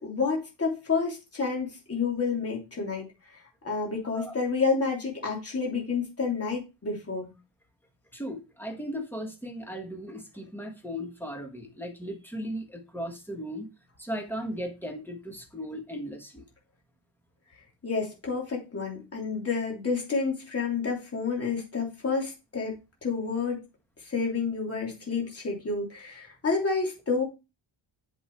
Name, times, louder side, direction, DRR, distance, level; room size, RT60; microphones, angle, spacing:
voice 1, 0.0-3.4 3.6-7.3 17.8-23.6 24.0-27.2, left 4 dB, 30° left, -1 dB, 3.1 m, -29 dB
voice 2, 8.1-13.7 14.0-16.4, equal, 5° left, 2 dB, 1.7 m, -37 dB
7.7 x 5.4 x 4.7 m, 0.27 s
wide cardioid pair, 165°, 47 cm